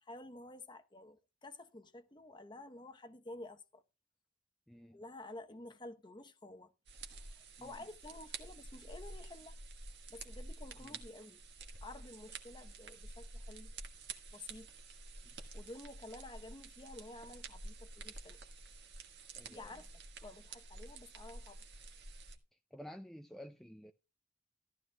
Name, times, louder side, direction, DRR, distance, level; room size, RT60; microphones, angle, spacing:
voice 1, 0.0-3.8 4.9-6.7 7.4-9.6 10.1-11.4 11.8-13.7 14.3-14.7 15.5-18.4 19.5-19.9 20.2-21.7, left 2 dB, 25° left, 0.9 m, -51 dB
voice 2, 4.7-5.0 7.6-7.8 10.8-11.0 15.2-15.4 19.3-19.7 22.7-23.9, equal, ahead, 0.4 m, -52 dB
sound 1, 6.9-22.4, right 3 dB, 65° right, 1.6 m, -50 dB
14.0 x 12.5 x 2.3 m
head